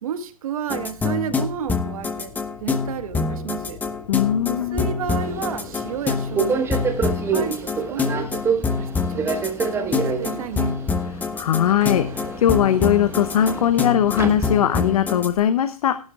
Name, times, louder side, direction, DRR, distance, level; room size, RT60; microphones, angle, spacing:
voice 1, 0.0-2.3 2.6-3.8 4.5-6.8 7.3-8.4 8.8-10.8, right 8 dB, 65° right, 1.7 m, -32 dB
sound 1, 0.7-15.3, left 4 dB, 10° left, 1.1 m, -26 dB
sound 2, 1.4-7.5, left 5 dB, 25° left, 1.3 m, -43 dB
voice 2, 4.1-4.9 11.4-16.0, left 10 dB, 70° left, 1.0 m, -20 dB
Subway metro underground, 5.2-15.0, right 6 dB, 15° right, 1.5 m, -28 dB
16.0 x 11.5 x 2.5 m
hypercardioid pair, 140°, 19 cm